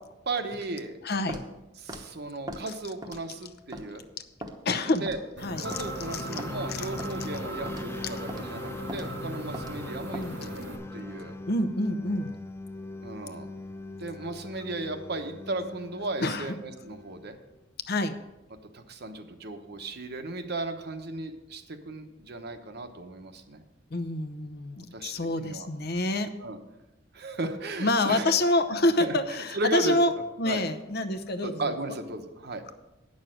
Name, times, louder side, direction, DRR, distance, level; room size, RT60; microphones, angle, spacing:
voice 1, 0.3-1.0 1.8-4.0 5.0-5.2 5.6-11.3 13.0-13.5 14.0-17.4 18.7-23.6 24.8-25.7 26.4-26.6 27.1-28.3 28.7-30.0 30.4-30.6 31.4-32.6, right 2 dB, 55° right, 7 dB, 1.0 m, -35 dB
voice 2, 1.0-1.5 4.6-5.1 5.4-5.8 6.1-6.4 6.7-6.9 10.1-10.5 11.5-12.3 16.2-16.5 17.9-18.2 23.9-26.3 27.8-30.1 30.4-31.9, left 2 dB, 55° left, 10 dB, 0.8 m, -27 dB
Walk footsteps, 1.3-1.5 1.9-2.1 2.5-2.6 3.0-3.3 3.7-3.9 4.4-4.5 5.1-5.3 5.7-5.9 6.4-6.5 7.0-7.2 7.7-7.9 8.3-8.4 8.9-9.1 9.5-9.8 10.1-10.3, equal, 20° right, 1.0 m, -39 dB
sound 1, 5.4-10.8, right 1 dB, 90° right, 1.8 m, -41 dB
sound 2, 5.6-17.4, left 1 dB, 15° left, 0.6 m, -40 dB
9.5 x 6.4 x 7.7 m, 1.0 s
head